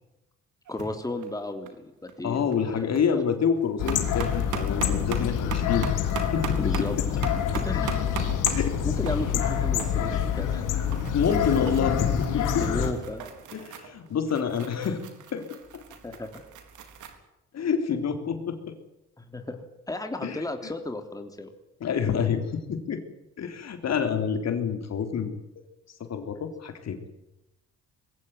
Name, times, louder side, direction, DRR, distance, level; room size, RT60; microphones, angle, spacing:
voice 1, 0.7-3.2 6.6-7.0 7.5-7.9 8.8-10.6 12.6-13.3 16.0-16.4 19.2-19.6 19.9-21.5, left 2 dB, 10° left, 6 dB, 3.2 m, -34 dB
sound 1, 0.7-0.9 1.2-1.8 2.1-2.2 2.5-3.0 3.4-17.2, right 6 dB, 80° right, 4.1 m, -39 dB
voice 2, 2.2-5.9 6.3-7.2 8.5-9.2 10.1-10.3 11.1-12.7 13.5-15.1 15.3-15.8 17.5-18.7 20.2-20.4 21.8-23.0 23.4-25.4 26.1-27.0, left 7 dB, 60° left, 7 dB, 3.7 m, -28 dB
sound 2, 3.8-12.9, left 8 dB, 90° left, 3.4 m, -26 dB
21.5 x 16.5 x 9.6 m, 0.91 s
cardioid pair, 90°, 30 cm